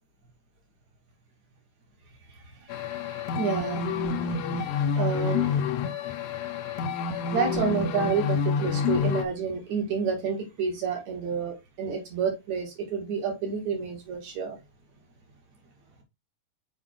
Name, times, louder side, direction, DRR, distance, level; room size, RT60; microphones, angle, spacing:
voice 1, 2.6-5.6 7.3-14.6, right 5 dB, 55° right, 3.4 m, -30 dB
sound 1, 2.7-9.2, left 6 dB, 75° left, 2.0 m, -28 dB
6.5 x 4.9 x 3.8 m
omnidirectional pair, 4.2 m